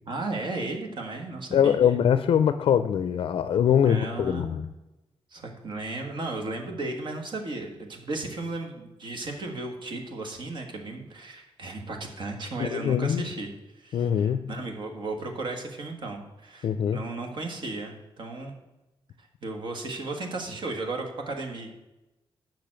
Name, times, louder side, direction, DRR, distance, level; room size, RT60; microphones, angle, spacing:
voice 1, 0.1-2.0 3.8-4.6 5.3-18.5 19.2-21.7, right 2 dB, 60° right, 3 dB, 1.5 m, -35 dB
voice 2, 1.5-4.7 12.6-13.2 13.9-14.5 16.6-17.0, left 8 dB, 75° left, 12 dB, 0.4 m, -23 dB
6.8 x 6.0 x 7.5 m, 1.0 s
wide cardioid pair, 155°, 9 cm